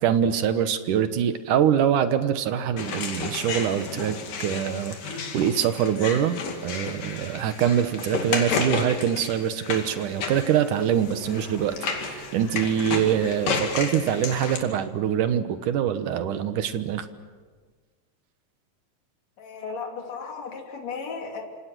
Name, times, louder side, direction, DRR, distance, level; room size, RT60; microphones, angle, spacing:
voice 1, 0.0-6.4 6.6-17.1, right 9 dB, 70° right, 10 dB, 2.6 m, -24 dB
sound 1, 2.8-14.6, left 5 dB, 75° left, 4.0 m, -32 dB
sound 2, 10.9-17.7, right 4 dB, 45° right, 3.3 m, -47 dB
voice 2, 19.4-21.4, left 5 dB, 50° left, 1 dB, 4.0 m, -35 dB
27.5 x 26.5 x 6.2 m, 1.4 s
omnidirectional pair, 4.0 m